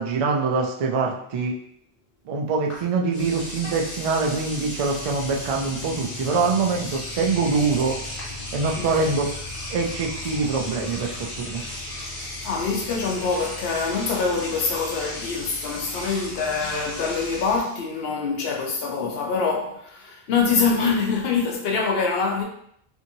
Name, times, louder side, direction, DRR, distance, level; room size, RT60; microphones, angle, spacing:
voice 1, 0.0-1.5 2.3-8.0 8.5-9.3 9.7-11.6, right 4 dB, 55° right, 0.4 m, -24 dB
Engine / Domestic sounds home sounds, 2.7-2.8 3.1-17.8, left 1 dB, 30° left, 1.1 m, -36 dB
sound 1, 3.2-17.6, left 2 dB, 45° left, 0.4 m, -41 dB
voice 2, 12.4-22.4, left 4 dB, 70° left, 0.8 m, -25 dB
2.8 x 2.6 x 2.6 m
omnidirectional pair, 1.1 m